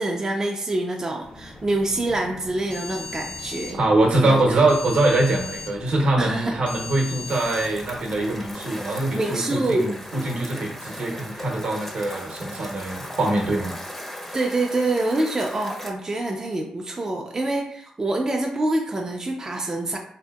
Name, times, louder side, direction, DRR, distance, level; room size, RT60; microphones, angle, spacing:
voice 1, 0.0-3.8 4.3-4.6 6.2-6.5 9.2-9.9 14.3-20.0, right 2 dB, 25° right, 1 dB, 0.4 m, -26 dB
sound 1, 1.2-8.5, left 3 dB, 55° left, 0.6 m, -39 dB
voice 2, 3.7-13.7, right 2 dB, 65° right, 0 dB, 0.7 m, -23 dB
sound 2, 7.3-15.9, equal, 15° left, 0.6 m, -37 dB
2.7 x 2.6 x 2.3 m, 0.65 s
cardioid pair, 75°, 2 cm